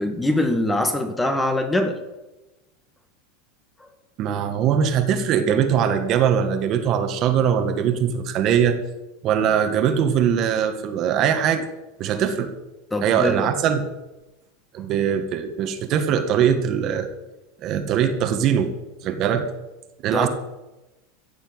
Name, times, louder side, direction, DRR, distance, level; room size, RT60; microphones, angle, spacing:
voice 1, 0.0-2.0 12.1-12.2 12.9-13.5 20.1-20.3, left 1 dB, 10° left, 6 dB, 1.9 m, -23 dB
voice 2, 4.2-8.8 9.2-11.7 12.0-12.5 13.0-13.8 14.7-17.1 17.6-18.7 19.0-19.4 20.0-20.3, right 8 dB, 40° right, 7 dB, 1.9 m, -21 dB
15.5 x 7.4 x 9.0 m, 1.0 s
supercardioid pair, 135°, 0 cm